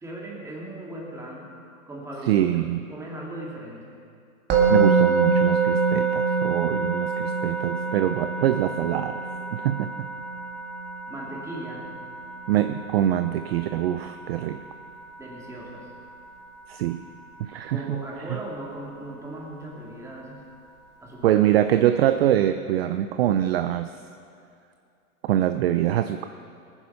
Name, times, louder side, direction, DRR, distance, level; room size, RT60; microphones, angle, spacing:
voice 1, 0.0-1.5 1.9-3.9 11.1-12.0 15.2-15.9 17.7-20.5 21.0-21.4, right 1 dB, 5° right, -3 dB, 2.3 m, -38 dB
voice 2, 2.3-2.8 4.7-9.2 9.5-9.9 12.5-14.6 16.7-17.0 17.4-18.0 21.2-23.9 25.3-26.2, right 12 dB, 45° right, 10 dB, 0.5 m, -24 dB
Musical instrument, 4.5-15.6, right 5 dB, 25° right, 1.9 m, -26 dB
18.0 x 10.0 x 5.7 m, 2.5 s
hypercardioid pair, 140°, 45 cm